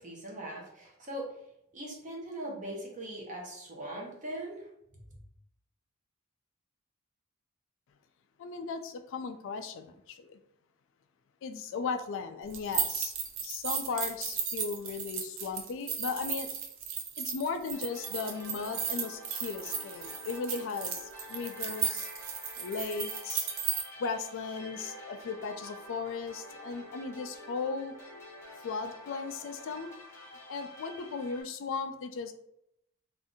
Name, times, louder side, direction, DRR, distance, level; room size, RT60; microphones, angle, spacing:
voice 1, 0.0-1.3 1.7-4.7, right 1 dB, 35° right, -1 dB, 0.8 m, -40 dB
voice 2, 8.4-10.4 11.4-13.1 13.4-16.5 17.2-22.1 22.6-23.5 24.0-27.9 28.6-29.9 30.5-32.3, left 5 dB, 60° left, 8 dB, 0.3 m, -36 dB
sound 1, 12.5-23.8, right 7 dB, 60° right, 0.5 m, -35 dB
sound 2, 17.7-31.4, equal, 10° left, 0.8 m, -48 dB
2.6 x 2.5 x 3.5 m, 0.76 s
head